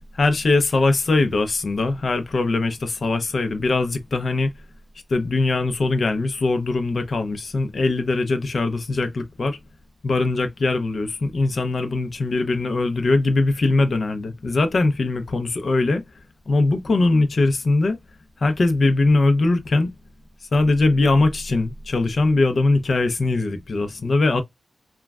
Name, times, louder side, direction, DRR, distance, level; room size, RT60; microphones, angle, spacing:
voice 1, 0.1-4.5 5.1-9.6 10.0-16.0 16.5-18.0 18.4-19.9 20.5-24.4, left 2 dB, 50° left, 0.6 m, -21 dB
3.1 x 2.3 x 2.3 m
wide cardioid pair, 115°, 0 cm